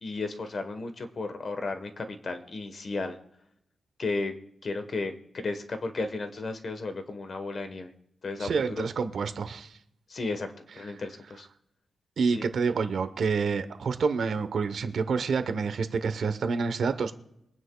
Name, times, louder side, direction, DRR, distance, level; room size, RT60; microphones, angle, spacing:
voice 1, 0.0-3.2 4.0-4.3 4.6-7.9 8.2-8.9 10.1-10.5 10.8-11.5 12.3-12.5, left 3 dB, 45° left, 7 dB, 1.2 m, -34 dB
voice 2, 8.4-9.7 12.2-17.1, right 5 dB, 70° right, 10 dB, 0.9 m, -28 dB
23.0 x 9.6 x 2.3 m, 0.79 s
wide cardioid pair, 130°, 0 cm